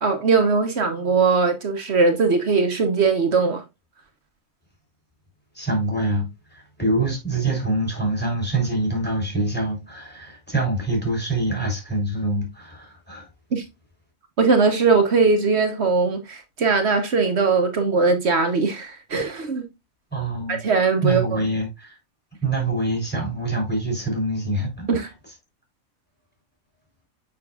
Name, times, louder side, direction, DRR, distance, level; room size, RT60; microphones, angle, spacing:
voice 1, 0.0-3.6 13.5-13.6 14.4-19.7 20.5-21.4 24.9-25.1, right 4 dB, 55° right, 1.2 m, -20 dB
voice 2, 5.5-13.3 20.1-20.6 21.0-21.9 22.4-25.1, right 2 dB, 5° left, 3.1 m, -25 dB
7.0 x 5.7 x 2.3 m
omnidirectional pair, 1.5 m